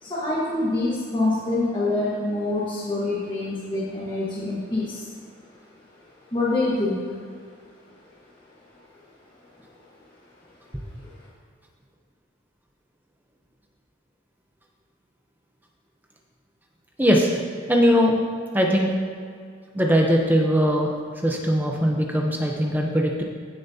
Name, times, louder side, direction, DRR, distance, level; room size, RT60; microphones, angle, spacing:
voice 1, 0.0-5.0 6.3-7.0, left 2 dB, 25° left, -8 dB, 1.5 m, -25 dB
voice 2, 17.0-17.4 17.7-18.2 18.5-18.9 19.7-20.9 21.2-23.2, equal, 10° right, 0 dB, 0.8 m, -20 dB
16.0 x 7.2 x 2.8 m, 2.1 s
head